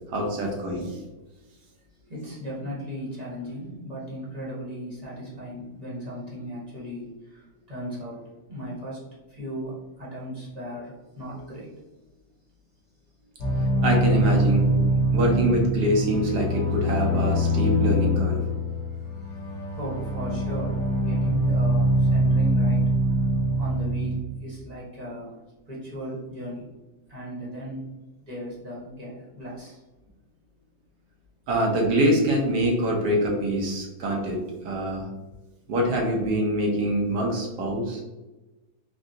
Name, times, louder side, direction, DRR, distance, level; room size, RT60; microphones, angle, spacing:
voice 1, 0.1-1.0 13.8-14.7 15.1-18.4 31.5-34.4 34.6-35.1 35.7-38.0, right 1 dB, 70° right, 0 dB, 1.4 m, -24 dB
voice 2, 2.0-8.2 8.5-9.0 9.3-11.7 18.7-22.8 23.6-25.4 25.7-26.6 27.1-27.9 28.2-29.8, equal, 25° right, -7 dB, 1.1 m, -37 dB
sound 1, 13.4-24.2, right 1 dB, 75° left, 1.3 m, -23 dB
3.8 x 2.3 x 2.6 m, 1.1 s
omnidirectional pair, 1.9 m